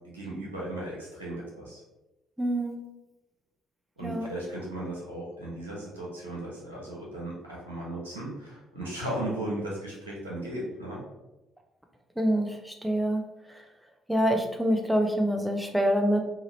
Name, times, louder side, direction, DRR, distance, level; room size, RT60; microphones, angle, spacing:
voice 1, 0.1-1.8 4.0-11.0, right 1 dB, 85° right, -5 dB, 0.7 m, -36 dB
voice 2, 2.4-2.8 4.0-4.3 12.2-13.3 14.1-16.2, equal, 5° right, 3 dB, 0.6 m, -26 dB
2.8 x 2.4 x 3.1 m, 1.0 s
figure-of-eight pair, 50°, 0 cm